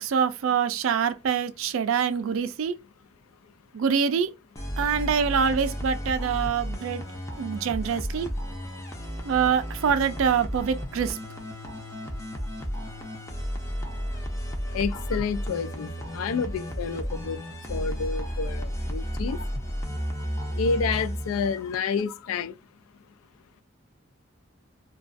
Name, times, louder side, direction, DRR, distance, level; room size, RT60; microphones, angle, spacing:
voice 1, 0.0-2.7 3.7-4.3 4.8-7.0 7.4-8.3 9.2-11.2, right 7 dB, 75° right, 0.3 m, -25 dB
sound 1, 4.6-22.0, equal, 15° left, 0.4 m, -33 dB
voice 2, 14.7-17.4 17.7-19.4 20.6-22.5, left 5 dB, 85° left, 0.3 m, -29 dB
2.4 x 2.2 x 2.4 m
head